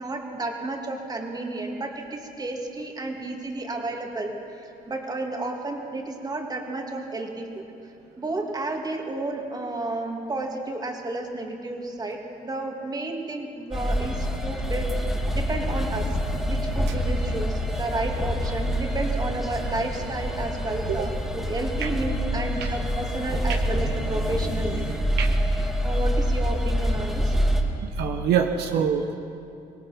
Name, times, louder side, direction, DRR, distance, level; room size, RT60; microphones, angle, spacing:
voice 1, 0.0-4.3 4.9-7.5 8.2-14.9 15.3-16.2 16.4-24.8 25.5-27.4 28.7-28.9, right 2 dB, 25° right, 2 dB, 2.8 m, -32 dB
sound 1, 13.7-27.6, equal, ahead, 2.6 m, -26 dB
sound 2, 15.5-25.0, left 3 dB, 75° left, 4.0 m, -41 dB
voice 2, 28.0-29.1, right 8 dB, 75° right, 5 dB, 1.3 m, -24 dB
25.0 x 19.0 x 6.1 m, 2.6 s
cardioid pair, 110°, 17 cm